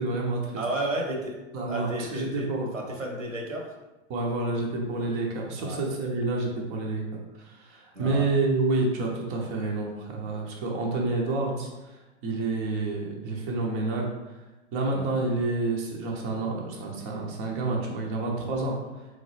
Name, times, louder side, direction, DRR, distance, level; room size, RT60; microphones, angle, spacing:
voice 1, 0.0-0.6 1.5-2.7 4.1-7.0 7.4-14.1 14.7-18.7, right 3 dB, 25° right, -1 dB, 0.6 m, -29 dB
voice 2, 0.6-1.3 1.7-2.5 2.7-3.7 5.6-5.8 7.9-8.3 14.9-15.0, right 1 dB, 85° right, 0 dB, 1.0 m, -32 dB
3.8 x 2.9 x 3.1 m, 1.1 s
figure-of-eight pair, 105°, 38 cm